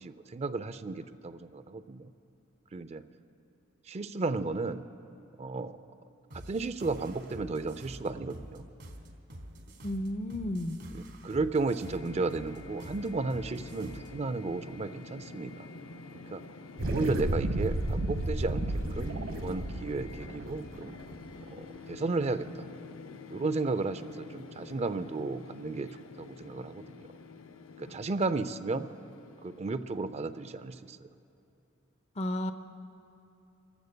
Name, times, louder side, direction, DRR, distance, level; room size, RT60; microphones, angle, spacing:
voice 1, 0.0-2.1 2.7-3.0 3.9-4.8 5.4-5.8 6.3-8.7 10.9-15.7 16.3-16.4 16.8-18.6 18.9-21.0 21.5-22.7 23.3-25.9 26.2-27.1 27.8-28.9 29.4-31.1, right 3 dB, 30° right, 12 dB, 0.4 m, -34 dB
sound 1, 6.3-14.2, equal, 55° right, 1.3 m, -47 dB
voice 2, 9.8-10.8 32.2-32.5, left 1 dB, 30° left, 10 dB, 0.6 m, -32 dB
sound 2, 11.8-31.0, left 3 dB, 75° left, 0.6 m, -48 dB
sound 3, 16.8-21.4, right 1 dB, 80° right, 1.2 m, -32 dB
28.5 x 15.0 x 2.2 m, 2.9 s
head